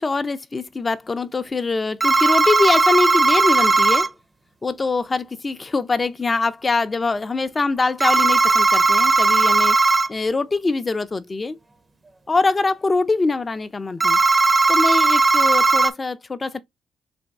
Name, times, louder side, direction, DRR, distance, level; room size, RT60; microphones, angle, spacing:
voice 1, 0.0-4.1 4.6-9.8 10.1-11.6 12.3-14.2 14.7-16.6, left 3 dB, 25° left, 0.5 m, -23 dB
sound 1, 2.0-4.1 8.0-10.1 14.0-15.9, right 3 dB, 25° right, 0.7 m, -17 dB
3.5 x 3.1 x 4.0 m
cardioid pair, 90°, 0 cm